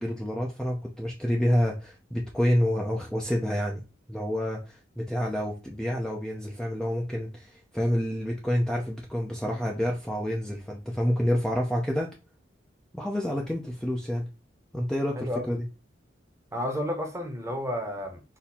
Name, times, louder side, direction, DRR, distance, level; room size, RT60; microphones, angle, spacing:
voice 1, 0.0-3.8 4.1-12.1 12.9-14.3 14.7-15.6, equal, 5° left, 0.5 m, -28 dB
voice 2, 15.2-15.5 16.5-18.2, equal, 15° right, 0.9 m, -31 dB
4.2 x 2.7 x 4.1 m
head